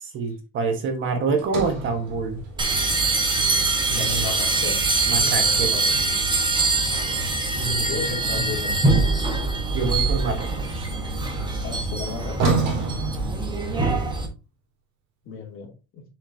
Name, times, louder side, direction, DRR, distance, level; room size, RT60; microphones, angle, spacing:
voice 1, 0.0-2.4 3.9-4.3 5.1-6.0 7.6-8.5 9.7-10.9, right 4 dB, 40° right, 5 dB, 1.3 m, -27 dB
Sliding door, 1.4-5.6 9.1-14.1, right 4 dB, 75° right, 4.0 m, -32 dB
sound 1, 2.6-14.3, right 3 dB, 15° right, 1.2 m, -23 dB
voice 2, 3.9-4.8 5.2-5.9 7.7-9.0 11.6-12.6 15.2-16.0, left 5 dB, 40° left, 0 dB, 2.6 m, -35 dB
6.8 x 6.4 x 2.7 m, 0.28 s
cardioid pair, 170°, 33 cm